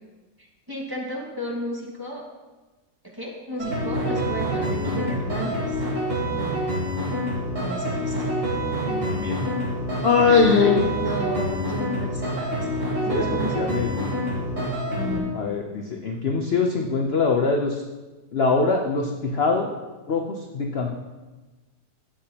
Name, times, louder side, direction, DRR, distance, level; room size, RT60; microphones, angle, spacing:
voice 1, 0.7-2.2 3.1-5.8 6.3-6.6 7.6-8.3 10.3-12.7 13.1-13.7 14.9-15.3, right 1 dB, 15° right, -4 dB, 1.7 m, -33 dB
sound 1, 3.6-15.2, equal, 45° right, 4.1 m, -27 dB
voice 2, 8.8-9.5 10.0-10.8 13.1-14.1 15.3-17.8 18.3-19.7 20.1-20.9, left 4 dB, 50° left, 2 dB, 0.8 m, -22 dB
12.5 x 8.6 x 2.9 m, 1.2 s
omnidirectional pair, 1.8 m